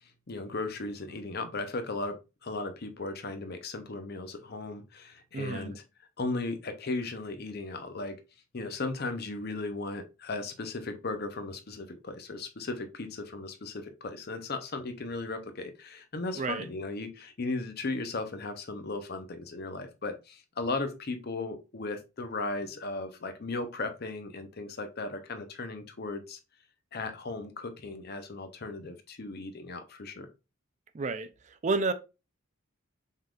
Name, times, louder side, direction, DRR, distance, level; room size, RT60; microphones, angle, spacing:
voice 1, 0.3-5.8 6.2-8.2 8.5-26.4 26.9-30.3, left 3 dB, 50° left, 0.7 m, -36 dB
voice 2, 5.3-5.7 16.4-16.7 30.9-31.3 31.6-31.9, right 3 dB, 35° right, 0.4 m, -30 dB
5.5 x 3.7 x 2.4 m
head